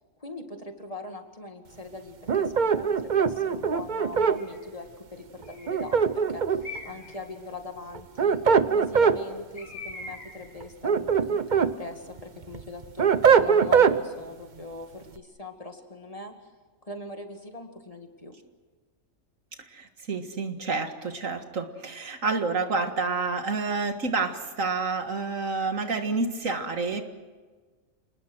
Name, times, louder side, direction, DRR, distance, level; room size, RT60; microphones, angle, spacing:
voice 1, 0.2-6.0 6.3-8.4 8.7-13.1 13.4-16.3 16.8-18.3, left 2 dB, 25° left, 4 dB, 2.2 m, -41 dB
sound 1, 2.3-4.4 5.7-6.8 7.9-9.2 10.6-11.7 12.2-14.0, right 6 dB, 40° right, 0.8 m, -21 dB
Bird, 4.2-4.7 5.4-6.0 6.6-7.2 9.6-10.6, left 2 dB, 85° left, 7.4 m, -42 dB
voice 2, 19.7-27.0, right 4 dB, 70° right, 7 dB, 2.1 m, -29 dB
28.5 x 20.0 x 6.3 m, 1.4 s
omnidirectional pair, 1.4 m